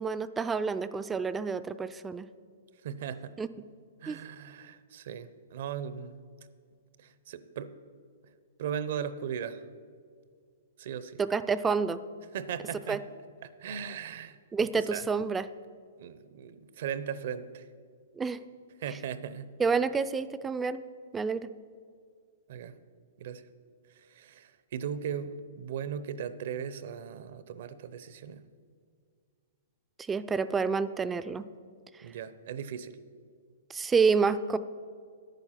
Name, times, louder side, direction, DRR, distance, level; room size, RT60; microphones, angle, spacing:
voice 1, 0.0-2.3 3.4-3.5 4.1-4.2 11.3-12.0 12.9-13.0 14.5-15.4 18.2-18.4 19.6-20.8 21.1-21.5 30.1-31.5 33.7-34.6, right 5 dB, 10° right, 13 dB, 0.4 m, -28 dB
voice 2, 2.8-3.4 4.0-6.2 7.0-7.7 8.2-8.3 8.6-9.7 10.8-11.2 12.3-13.1 13.4-15.1 16.0-17.7 18.8-19.5 22.5-22.7 23.2-23.5 23.9-28.5 32.0-33.0, right 8 dB, 60° right, 14 dB, 0.7 m, -38 dB
10.5 x 9.1 x 5.7 m, 2.1 s
hypercardioid pair, 140°, 0 cm